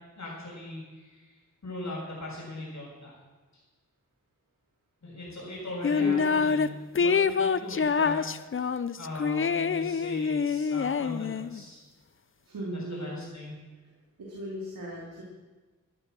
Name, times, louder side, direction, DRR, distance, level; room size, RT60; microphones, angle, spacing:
voice 1, 0.2-1.3 1.6-3.1 3.5-3.6 5.0-8.2 8.5-11.8 12.7-13.6, left 1 dB, 60° left, -9 dB, 6.3 m, -39 dB
sound 1, 5.8-6.7 7.0-11.6, left 5 dB, 40° left, 0.5 m, -26 dB
voice 2, 6.0-6.4 12.4-13.3 14.2-15.2, right 1 dB, 90° right, -5 dB, 3.1 m, -37 dB
16.0 x 12.0 x 6.3 m, 1.3 s
wide cardioid pair, 75°, 33 cm